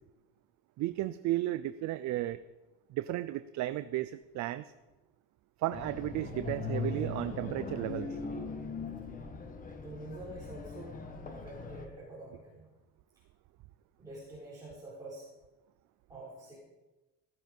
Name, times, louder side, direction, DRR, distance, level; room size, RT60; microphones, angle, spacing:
voice 1, 0.8-2.4 2.9-4.7 5.6-8.1, right 15 dB, 55° right, 13 dB, 0.5 m, -34 dB
sound 1, 5.7-11.9, left 4 dB, 25° left, 1.3 m, -40 dB
voice 2, 9.8-10.9 11.3-12.7 14.0-15.3 16.1-16.6, right 2 dB, 10° right, -6 dB, 4.3 m, -46 dB
17.0 x 12.5 x 5.4 m, 1.1 s
cardioid pair, 170°, 35 cm